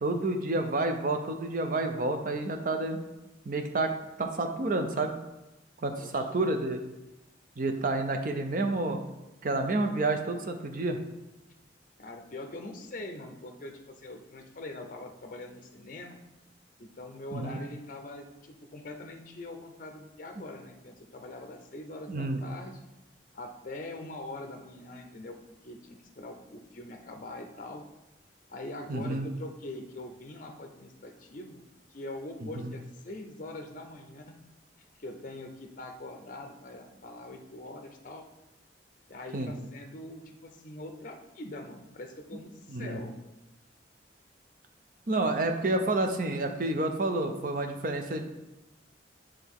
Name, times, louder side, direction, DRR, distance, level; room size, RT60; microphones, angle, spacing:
voice 1, 0.0-3.0 3.5-3.9 4.2-5.1 5.8-6.8 7.6-9.0 9.4-11.0 17.3-17.6 22.1-22.4 28.9-29.3 32.4-32.7 39.3-39.5 42.7-43.0 45.1-48.2, right 2 dB, 45° right, 5 dB, 0.6 m, -29 dB
voice 2, 12.0-16.2 16.8-22.8 23.3-25.4 25.6-27.8 28.5-31.6 31.9-34.4 35.0-38.2 39.1-43.2, left 2 dB, 45° left, 4 dB, 0.5 m, -43 dB
8.0 x 3.4 x 3.6 m, 0.98 s
head